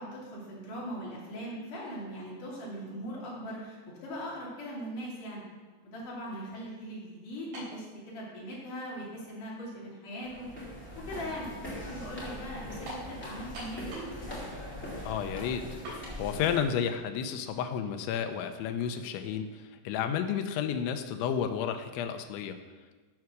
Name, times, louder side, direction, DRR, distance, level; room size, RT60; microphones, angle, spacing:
voice 1, 0.0-5.4 5.8-10.5 11.1-11.5 11.8-14.4, equal, 50° left, -5 dB, 4.1 m, -40 dB
sound 1, 7.5-7.8 8.7-8.8 12.9-13.1 13.5-14.2 14.5-14.6 15.8-16.0, right 1 dB, 70° right, 5.3 m, -41 dB
sound 2, 10.2-16.8, left 1 dB, 5° left, 2.2 m, -42 dB
voice 2, 15.1-22.6, left 8 dB, 85° left, 7 dB, 3.1 m, -32 dB
14.0 x 4.8 x 6.2 m, 1.3 s
omnidirectional pair, 5.3 m